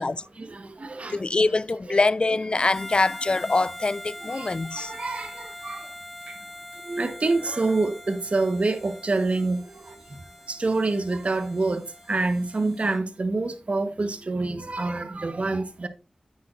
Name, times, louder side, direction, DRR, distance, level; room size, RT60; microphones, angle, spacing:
voice 1, 0.4-1.2 1.9-2.0 4.3-4.5 4.7-5.9 6.8-9.6 10.5-15.9, right 3 dB, 60° right, 1.1 m, -27 dB
voice 2, 1.1-4.9, left 3 dB, 45° left, 0.4 m, -24 dB
Harmonica, 2.7-13.0, left 1 dB, 5° right, 2.3 m, -43 dB
9.4 x 8.4 x 2.5 m
wide cardioid pair, 50°, 2 cm